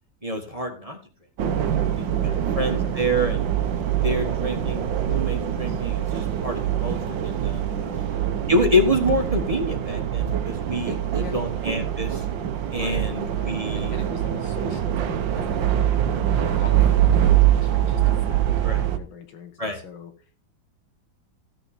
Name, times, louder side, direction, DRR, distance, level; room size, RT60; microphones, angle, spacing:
voice 1, 0.2-1.0 1.5-3.5 3.9-7.7 8.5-12.2 12.7-14.0 18.6-18.8 19.6-19.8, equal, 20° right, 2 dB, 1.5 m, -27 dB
sound 1, 1.4-19.0, right 11 dB, 75° right, 1.7 m, -24 dB
voice 2, 2.2-3.0 7.7-8.1 10.9-11.4 12.8-16.0 16.6-18.4 18.7-20.1, left 6 dB, 90° left, 6 dB, 2.4 m, -42 dB
15.0 x 6.9 x 4.3 m, 0.37 s
omnidirectional pair, 2.1 m